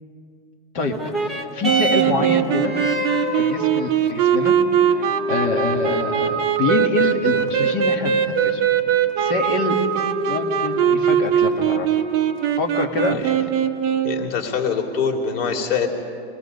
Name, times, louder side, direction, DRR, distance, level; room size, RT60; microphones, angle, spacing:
voice 1, 0.7-2.7 3.4-4.5 4.8-8.6 9.2-9.8 10.3-12.0 12.6-13.2, left 4 dB, 35° left, 2 dB, 1.8 m, -26 dB
sound 1, 0.8-9.8 10.6-10.7, right 1 dB, ahead, 0.8 m, -30 dB
sound 2, 1.6-14.3, right 8 dB, 30° right, 1.0 m, -20 dB
voice 2, 14.0-15.9, left 6 dB, 70° left, 3 dB, 2.9 m, -23 dB
27.5 x 19.5 x 5.3 m, 2.4 s
supercardioid pair, 175°, 31 cm